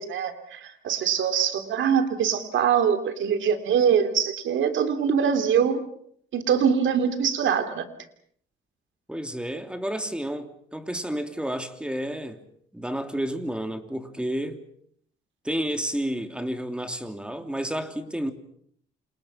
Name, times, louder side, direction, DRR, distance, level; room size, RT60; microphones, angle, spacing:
voice 1, 0.0-5.8 6.3-7.9, right 7 dB, 75° right, 3.4 m, -23 dB
voice 2, 9.1-12.4 12.7-14.6 15.4-18.3, right 1 dB, 5° right, 3.1 m, -31 dB
29.0 x 27.5 x 5.8 m
cardioid pair, 90°, 20 cm